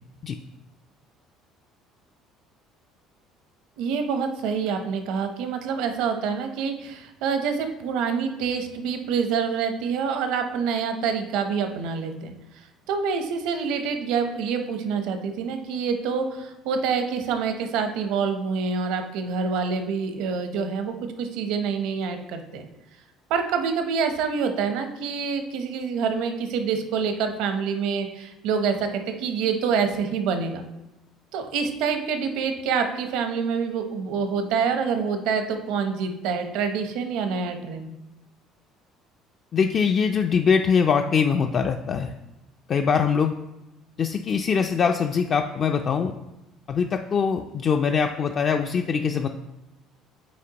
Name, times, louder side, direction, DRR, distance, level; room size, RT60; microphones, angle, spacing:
voice 1, 3.8-12.3 12.9-22.6 23.3-30.6 31.3-37.9, right 6 dB, 75° right, 7 dB, 0.8 m, -26 dB
voice 2, 39.5-42.1 42.7-43.3 44.0-46.1 46.7-49.3, left 6 dB, 40° left, 5 dB, 0.3 m, -22 dB
8.4 x 4.6 x 2.9 m, 0.94 s
cardioid pair, 120°, 0 cm